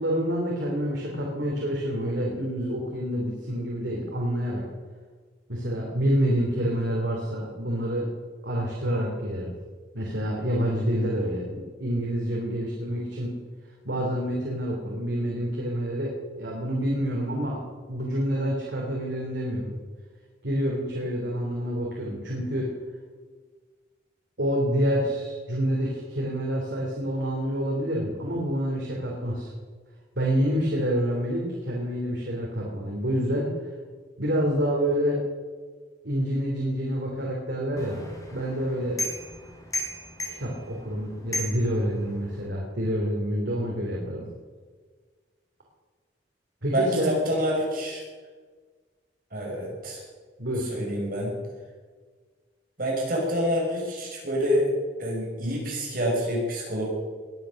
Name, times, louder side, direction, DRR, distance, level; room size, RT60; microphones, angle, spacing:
voice 1, 0.0-4.6 5.5-8.1 8.4-9.5 9.9-13.4 13.8-17.6 17.9-19.8 20.4-22.7 24.4-29.5 30.2-33.5 34.2-35.2 36.0-38.0 38.3-39.0 40.4-44.2 46.6-47.1 50.4-50.7, equal, 80° right, -2 dB, 3.4 m, -27 dB
sound 1, 37.8-42.5, left 1 dB, 20° left, 4.2 m, -36 dB
voice 2, 46.7-48.0 49.3-50.0 50.7-51.3 52.8-54.7 55.0-56.9, equal, 55° right, -2 dB, 5.8 m, -27 dB
20.0 x 9.3 x 6.5 m, 1.5 s
head